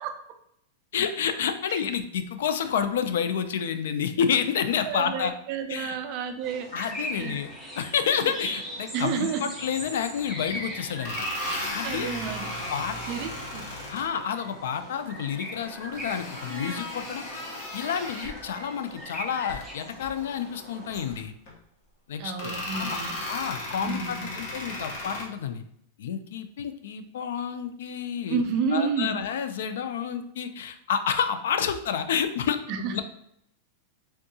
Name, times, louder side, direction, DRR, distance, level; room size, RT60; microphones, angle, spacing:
voice 1, 0.9-5.3 5.7-6.0 6.7-7.5 7.8-11.3 11.7-12.1 12.7-13.0 13.9-17.2 17.7-21.3 22.1-23.0 23.3-25.6 26.0-28.4 28.7-32.6 32.9-33.0, left 7 dB, 75° left, 9 dB, 0.3 m, -29 dB
voice 2, 4.8-6.7 7.2-7.3 8.2-8.3 8.9-9.5 11.8-12.5 13.1-13.7 22.2-23.2 23.8-24.3 28.3-29.2 32.7-33.0, right 6 dB, 35° right, 6 dB, 0.3 m, -30 dB
sound 1, 6.4-21.1, equal, ahead, 0.7 m, -40 dB
sound 2, 10.2-10.3 10.9-14.1 15.9-18.5 19.4-19.6 20.0-20.1 20.9-21.5 22.3-25.2, left 1 dB, 45° left, 0.8 m, -35 dB
3.5 x 2.7 x 2.7 m, 0.73 s
supercardioid pair, 175°, 0 cm